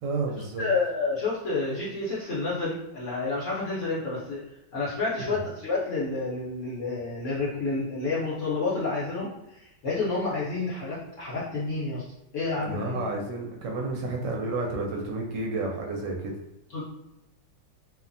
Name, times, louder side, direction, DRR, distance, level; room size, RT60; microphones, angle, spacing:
voice 1, 0.0-0.7 5.2-5.4 12.6-16.4, right 2 dB, 80° right, 0 dB, 1.2 m, -31 dB
voice 2, 0.6-4.4 4.7-12.0 12.3-13.1 16.7-16.8, left 3 dB, 55° left, -8 dB, 0.9 m, -29 dB
3.0 x 2.1 x 2.5 m, 0.89 s
omnidirectional pair, 1.9 m